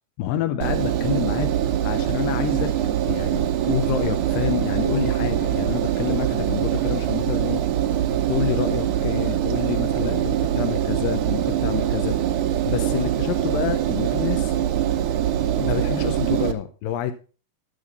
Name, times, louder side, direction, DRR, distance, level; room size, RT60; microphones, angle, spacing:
voice 1, 0.2-1.5 1.8-2.7 3.1-7.6 8.3-12.2 12.7-14.6 15.6-17.1, left 10 dB, 75° left, 8 dB, 2.2 m, -28 dB
Engine, 0.6-16.5, right 11 dB, 70° right, 2.0 m, -23 dB
13.0 x 6.9 x 4.0 m, 0.37 s
omnidirectional pair, 4.6 m